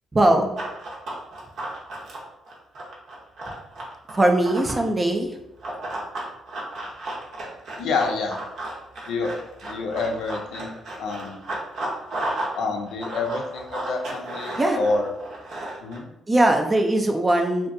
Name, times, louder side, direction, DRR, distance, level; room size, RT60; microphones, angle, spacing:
voice 1, 0.1-0.5 4.1-5.4 14.6-14.8 16.3-17.7, right 1 dB, 20° right, 4 dB, 0.3 m, -20 dB
Run, 0.6-4.9 5.6-12.6 12.8-16.0, right 1 dB, 65° right, 0.7 m, -33 dB
voice 2, 7.8-8.4 9.1-9.3 9.6-10.7 11.0-11.4 12.6-15.1 15.8-16.1, left 3 dB, 80° left, 3 dB, 0.4 m, -27 dB
2.5 x 2.2 x 2.5 m, 0.88 s
cardioid pair, 90°, 0 cm